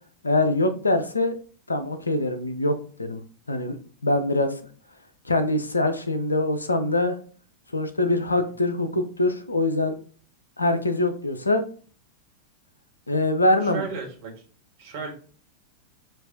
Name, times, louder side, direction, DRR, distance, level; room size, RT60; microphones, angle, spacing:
voice 1, 0.2-1.3 1.7-3.2 3.5-3.8 4.0-4.6 5.3-7.2 7.7-9.9 10.6-11.7 13.1-13.8, left 2 dB, 80° left, 10 dB, 0.5 m, -23 dB
voice 2, 13.6-14.3 14.8-15.1, right 5 dB, 50° right, 2 dB, 1.6 m, -34 dB
7.4 x 2.5 x 2.7 m, 0.42 s
figure-of-eight pair, 90°, 0 cm